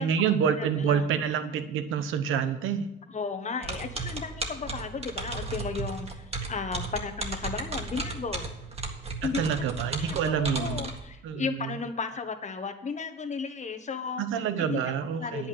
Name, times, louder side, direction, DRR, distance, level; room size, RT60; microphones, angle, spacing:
voice 1, 0.0-2.9 9.2-10.9 11.2-11.7 14.2-15.5, right 7 dB, 90° right, 10 dB, 0.9 m, -27 dB
voice 2, 0.5-1.1 3.1-8.5 9.2-9.4 10.0-14.2 14.6-14.8 15.1-15.5, left 5 dB, 35° left, 8 dB, 1.3 m, -34 dB
sound 1, 3.6-11.0, right 3 dB, 30° right, 1.8 m, -35 dB
9.7 x 5.9 x 8.6 m, 0.92 s
cardioid pair, 90°, 20 cm